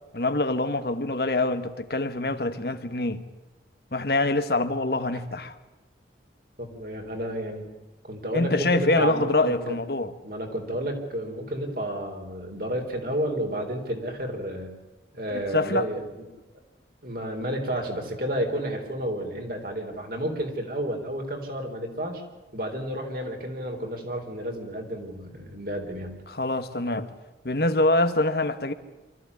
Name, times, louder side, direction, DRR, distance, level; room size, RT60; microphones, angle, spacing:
voice 1, 0.1-3.2 3.9-5.5 8.3-10.1 15.3-15.9 26.3-27.1 27.4-28.7, left 2 dB, 60° left, 1.4 m, -25 dB
voice 2, 6.6-7.7 8.0-9.8 10.2-14.8 15.1-16.2 17.0-22.2 22.5-26.2, right 1 dB, 55° right, 3.9 m, -31 dB
24.5 x 14.5 x 9.7 m
head